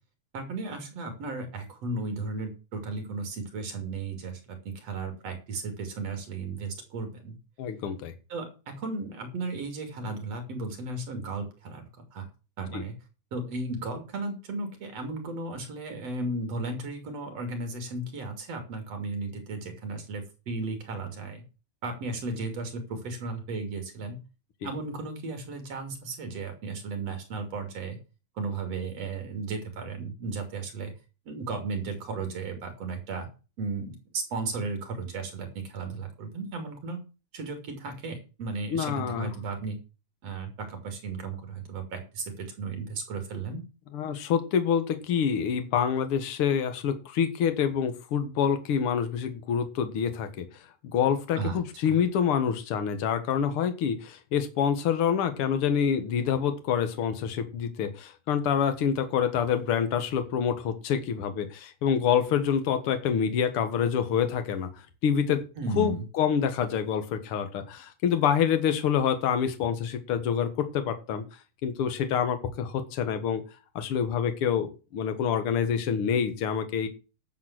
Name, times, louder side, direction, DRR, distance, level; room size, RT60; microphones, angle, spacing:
voice 1, 0.3-7.4 8.3-12.3 12.6-13.0 13.3-21.4 21.8-24.2 24.6-28.0 28.4-30.9 31.3-33.3 33.6-37.0 37.3-39.8 40.2-43.6 51.4-51.6 65.6-66.0, right 3 dB, 60° right, 6 dB, 3.8 m, -35 dB
voice 2, 7.6-8.1 12.7-12.8 24.6-24.7 38.7-39.3 43.9-50.6 50.9-65.5 65.8-73.4 73.8-76.9, left 8 dB, 55° left, 9 dB, 2.2 m, -27 dB
11.5 x 7.1 x 6.1 m, 0.32 s
omnidirectional pair, 3.3 m